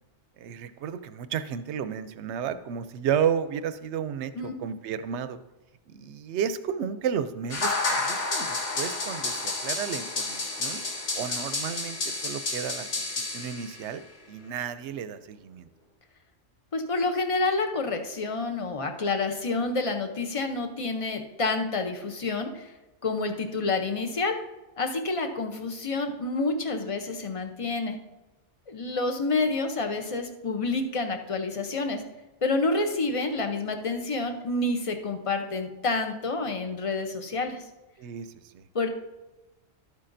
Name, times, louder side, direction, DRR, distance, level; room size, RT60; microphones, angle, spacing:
voice 1, 0.4-5.4 5.9-10.8 11.1-14.0 14.3-15.7 38.0-38.6, right 8 dB, 75° right, 12 dB, 0.8 m, -32 dB
sound 1, 7.5-13.9, left 3 dB, 80° left, 1.5 m, -30 dB
voice 2, 16.7-22.7 23.0-24.3 24.8-28.0 28.7-32.0 32.4-37.6 38.7-38.9, left 3 dB, 35° left, 5 dB, 0.7 m, -28 dB
12.0 x 8.4 x 2.6 m, 1.0 s
omnidirectional pair, 1.2 m